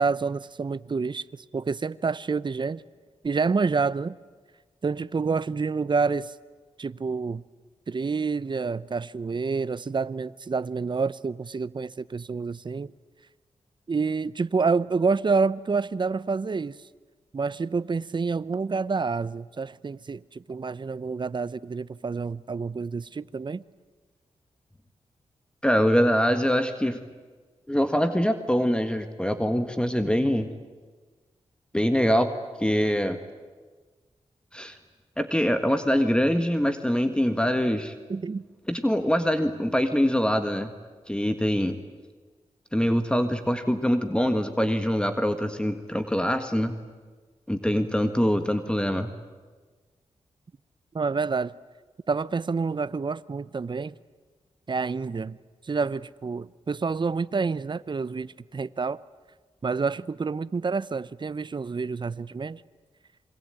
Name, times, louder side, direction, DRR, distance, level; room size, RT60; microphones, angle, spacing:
voice 1, 0.0-2.8 3.2-4.2 4.8-6.3 6.8-7.4 7.9-12.9 13.9-16.8 17.3-23.6 38.1-38.4 50.9-51.5 52.1-53.9 54.7-55.4 55.6-59.0 59.6-62.6, right 4 dB, 40° right, 0.7 m, -28 dB
voice 2, 25.6-27.0 27.7-30.5 31.7-32.3 32.6-33.2 34.5-34.8 35.2-37.9 38.7-40.7 41.1-41.8 42.7-46.7 47.5-49.1, equal, 10° left, 1.7 m, -24 dB
27.0 x 22.0 x 9.1 m
cardioid pair, 55°, 12 cm